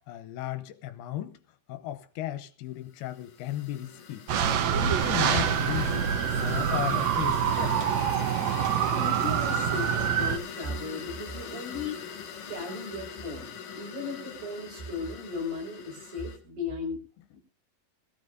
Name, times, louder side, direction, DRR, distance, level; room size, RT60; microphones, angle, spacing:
voice 1, 0.1-1.4 1.7-4.3 4.8-6.1 6.4-7.8, left 13 dB, 80° left, 2.7 m, -35 dB
sound 1, 3.0-16.4, left 7 dB, 60° left, 2.8 m, -42 dB
sound 2, 4.3-10.4, right 8 dB, 85° right, 1.5 m, -26 dB
voice 2, 8.8-12.0 12.5-17.0 17.3-17.4, left 3 dB, 70° right, 6.9 m, -36 dB
21.0 x 15.0 x 2.6 m
omnidirectional pair, 4.5 m